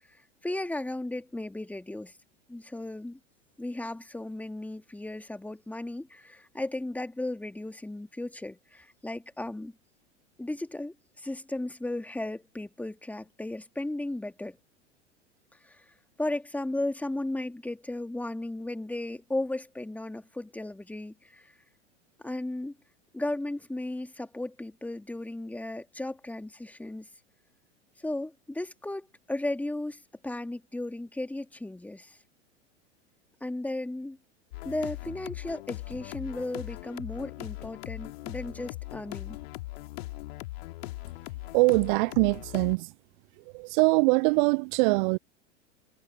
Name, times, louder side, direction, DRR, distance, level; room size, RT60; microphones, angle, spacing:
voice 1, 0.1-2.1 2.5-3.2 3.6-9.8 10.4-14.6 15.6-15.8 16.2-21.5 22.2-22.8 23.1-27.1 28.0-32.2 33.4-34.2 34.6-39.4, left 1 dB, 5° left, 2.3 m, -35 dB
sound 1, 34.5-42.8, left 19 dB, 60° left, 2.9 m, -40 dB
voice 2, 41.5-42.9 43.5-45.2, right 28 dB, 45° right, 0.5 m, -23 dB
figure-of-eight pair, 90°, 35 cm